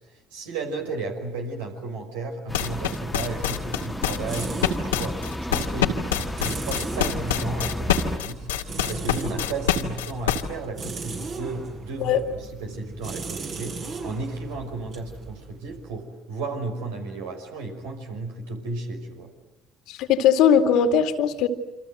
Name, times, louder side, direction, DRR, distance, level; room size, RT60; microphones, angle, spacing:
voice 1, 0.3-8.5 8.9-19.3, right 3 dB, 80° right, 3 dB, 5.7 m, -34 dB
sound 1, 2.5-10.4, left 9 dB, 90° left, 2.1 m, -25 dB
sound 2, 2.5-8.2, left 1 dB, 10° left, 1.7 m, -33 dB
sound 3, 3.9-16.0, right 4 dB, 55° right, 6.8 m, -38 dB
voice 2, 19.9-21.5, left 8 dB, 70° left, 7 dB, 2.3 m, -19 dB
28.0 x 26.5 x 7.9 m, 0.97 s
hypercardioid pair, 60°, 0 cm